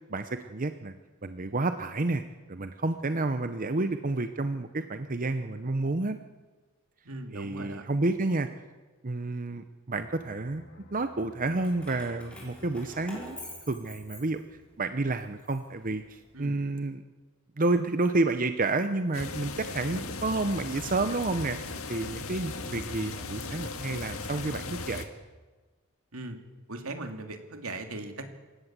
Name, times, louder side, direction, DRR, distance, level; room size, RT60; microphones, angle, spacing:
voice 1, 0.1-0.9 1.2-2.2 2.5-6.2 7.3-8.5 9.0-10.6 10.9-13.4 13.7-14.4 14.8-17.0 17.6-21.6 21.9-25.1, right 2 dB, 40° right, 9 dB, 0.8 m, -30 dB
voice 2, 7.0-7.9 16.3-16.6 26.1-26.4 26.7-28.3, right 2 dB, 80° right, 5 dB, 2.6 m, -39 dB
sound 1, 10.0-15.4 15.7-15.9, left 1 dB, 55° left, 1.9 m, -55 dB
Keys jangling, 11.6-14.7 15.2-16.5, left 1 dB, 5° left, 6.3 m, -46 dB
sound 2, 19.1-25.0, left 3 dB, 80° left, 1.9 m, -37 dB
27.5 x 16.5 x 7.5 m, 1.3 s
head